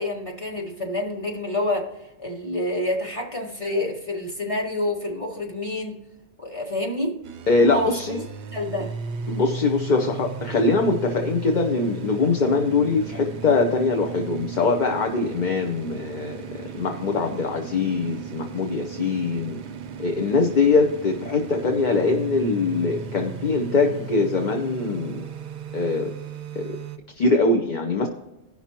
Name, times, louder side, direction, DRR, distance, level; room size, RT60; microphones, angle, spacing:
voice 1, 0.0-1.9 2.2-6.0 6.4-7.2 7.6-8.1 8.5-8.9, left 1 dB, 25° left, -2 dB, 1.8 m, -28 dB
sound 1, 7.2-27.0, right 5 dB, 55° right, 0.6 m, -36 dB
voice 2, 7.5-8.2 9.3-19.6 20.0-25.2 25.7-26.1 26.6-26.7 27.2-28.1, left 3 dB, 45° left, 4 dB, 0.8 m, -22 dB
17.5 x 5.8 x 3.0 m, 0.99 s
omnidirectional pair, 1.3 m